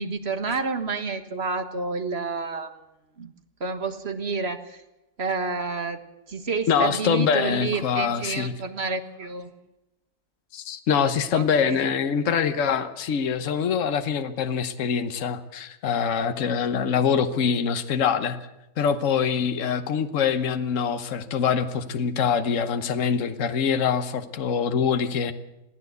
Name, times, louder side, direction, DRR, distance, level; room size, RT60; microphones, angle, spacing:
voice 1, 0.0-2.7 3.2-3.3 3.6-4.8 5.2-6.0 6.3-9.5 11.3-11.8, right 4 dB, 45° right, 7 dB, 1.7 m, -29 dB
voice 2, 6.7-8.5 10.5-18.4 18.8-25.3, left 7 dB, 55° left, 9 dB, 1.4 m, -24 dB
22.5 x 14.5 x 8.1 m, 0.93 s
omnidirectional pair, 1.6 m